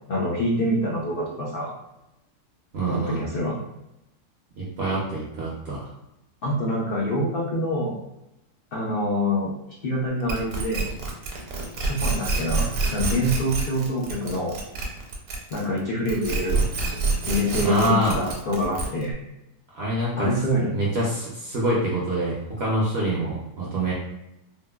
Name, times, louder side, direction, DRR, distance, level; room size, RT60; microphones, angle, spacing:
voice 1, 0.1-1.7 2.9-3.6 6.4-8.0 8.7-9.5 9.8-10.9 11.8-14.6 15.5-17.0 17.2-19.1 20.2-20.7, left 1 dB, 80° left, -4 dB, 0.5 m, -26 dB
voice 2, 2.7-3.3 4.6-5.9 17.6-18.2 19.7-20.3 20.7-23.9, right 1 dB, 60° right, -5 dB, 0.6 m, -25 dB
sound 1, 10.3-15.8 16.1-19.1, right 3 dB, 75° right, 1.2 m, -27 dB
3.7 x 2.1 x 2.2 m, 0.88 s
omnidirectional pair, 1.7 m